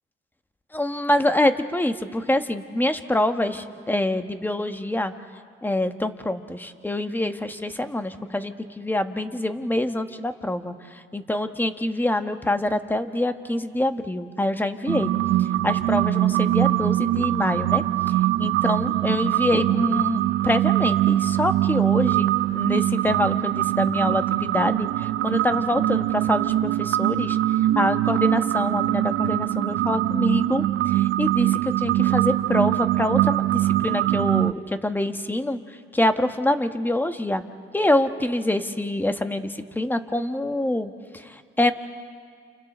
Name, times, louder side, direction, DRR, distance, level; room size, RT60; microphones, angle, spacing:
voice 1, 0.7-5.1 5.6-10.7 11.1-15.1 15.6-17.8 18.4-27.4 27.7-34.5 34.8-35.6 35.9-41.7, left 1 dB, 10° left, 8 dB, 1.3 m, -25 dB
sound 1, 14.9-34.5, right 14 dB, 75° right, 0.5 m, -22 dB
29.5 x 29.0 x 4.4 m, 2.1 s
cardioid pair, 90°, 20 cm